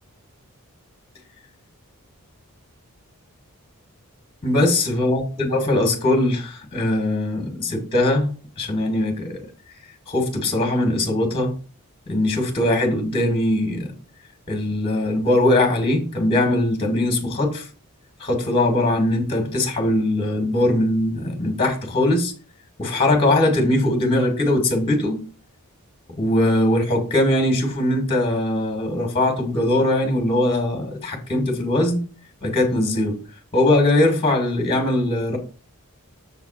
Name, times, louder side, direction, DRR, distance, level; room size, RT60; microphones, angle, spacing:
voice 1, 4.4-8.3 8.6-9.4 10.1-11.5 12.1-13.9 14.5-17.7 18.2-22.3 22.8-25.2 26.2-32.0 32.4-33.2 33.5-35.4, left 1 dB, 25° left, 2.0 m, -21 dB
7.3 x 4.0 x 5.7 m
head